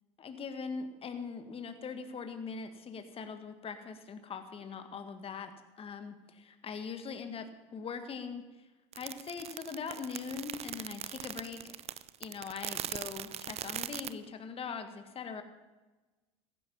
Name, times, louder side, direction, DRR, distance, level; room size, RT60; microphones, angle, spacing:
voice 1, 0.2-8.5 8.9-11.8 12.2-15.4, left 5 dB, 35° left, 8 dB, 1.8 m, -41 dB
sound 1, 8.9-14.1, right 11 dB, 40° right, 0.6 m, -40 dB
15.5 x 12.0 x 5.6 m, 1.2 s
hypercardioid pair, 80°, 17 cm